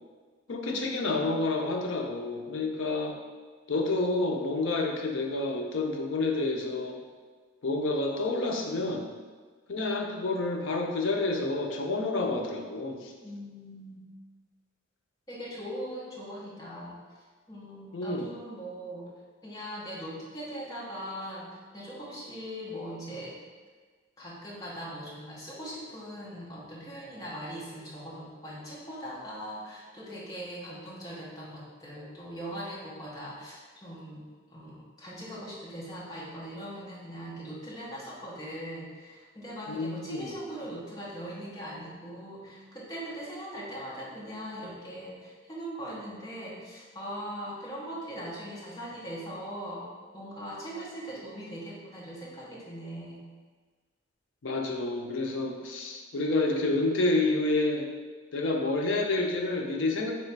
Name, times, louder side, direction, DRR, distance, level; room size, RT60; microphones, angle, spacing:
voice 1, 0.5-3.2 3.7-7.0 7.6-9.1 9.7-13.1 17.9-18.3 39.7-40.3 54.4-57.9 58.3-60.1, left 2 dB, 70° left, 1 dB, 0.6 m, -29 dB
voice 2, 13.2-14.0 15.3-17.0 17.5-19.1 19.4-23.4 24.2-34.2 34.5-49.9 50.1-53.3, equal, 20° left, -6 dB, 0.9 m, -40 dB
3.2 x 3.1 x 4.5 m, 1.4 s
head